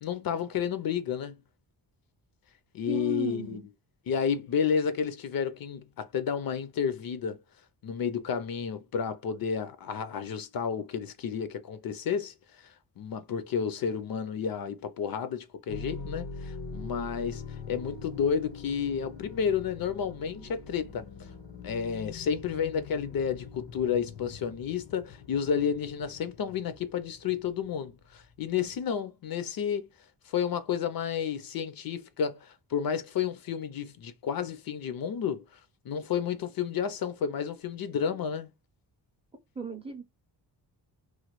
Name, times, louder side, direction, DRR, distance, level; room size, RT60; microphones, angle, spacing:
voice 1, 0.0-1.4 2.7-3.7 4.1-7.4 7.8-12.3 12.6-21.1 21.6-29.9 30.3-35.4 35.9-38.5, left 7 dB, 55° left, 0.5 m, -31 dB
voice 2, 2.9-3.6 39.6-40.0, right 2 dB, 15° right, 0.5 m, -35 dB
sound 1, 15.7-28.8, left 4 dB, 85° left, 0.8 m, -43 dB
3.1 x 2.1 x 2.9 m
wide cardioid pair, 150°, 42 cm